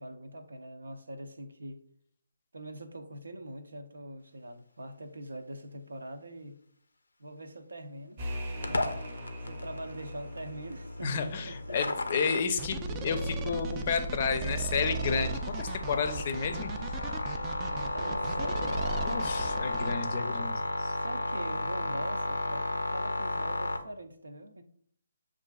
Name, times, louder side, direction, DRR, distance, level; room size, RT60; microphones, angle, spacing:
voice 1, 0.0-1.8 2.5-6.6 7.2-8.2 8.7-8.9 9.4-11.2 11.5-11.8 12.1-12.2 17.7-19.1 20.9-24.6, right 1 dB, 80° right, 7 dB, 0.6 m, -43 dB
sound 1, 8.2-11.7, equal, 45° right, 0.7 m, -42 dB
sound 2, 8.6-23.8, left 2 dB, 90° left, 0.5 m, -34 dB
voice 2, 11.0-16.7 19.0-21.0, left 5 dB, 40° left, 8 dB, 0.5 m, -31 dB
sound 3, 12.6-19.9, right 3 dB, 20° right, 0.3 m, -36 dB
6.5 x 2.5 x 2.3 m, 0.63 s
figure-of-eight pair, 150°, 0 cm